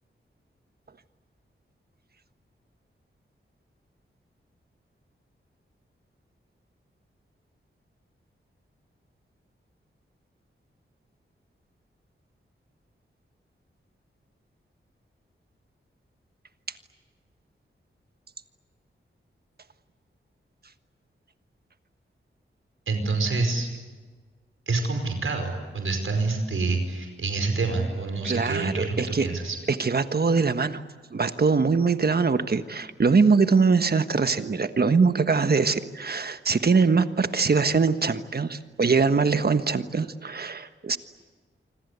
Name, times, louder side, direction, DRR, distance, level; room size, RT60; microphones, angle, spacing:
voice 1, 22.9-23.7 24.7-29.6, right 3 dB, 75° right, 5 dB, 5.0 m, -27 dB
voice 2, 28.2-29.3 29.7-30.8 31.1-41.0, right 4 dB, 50° right, 10 dB, 1.4 m, -22 dB
27.5 x 25.5 x 8.3 m, 1.4 s
wide cardioid pair, 90°, 21 cm